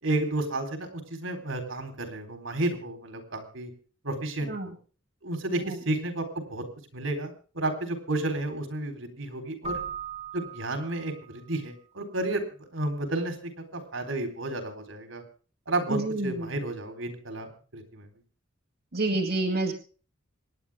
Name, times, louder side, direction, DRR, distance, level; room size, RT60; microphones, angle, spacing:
voice 1, 0.0-3.7 4.0-4.7 5.2-6.6 6.9-9.8 10.3-15.2 15.7-18.1, right 2 dB, 75° right, 6 dB, 4.2 m, -32 dB
Keyboard (musical), 9.6-11.5, right 6 dB, 30° right, 2.4 m, -38 dB
voice 2, 15.9-16.5 18.9-19.7, right 2 dB, 55° right, -1 dB, 2.1 m, -28 dB
27.0 x 10.0 x 3.6 m, 0.39 s
head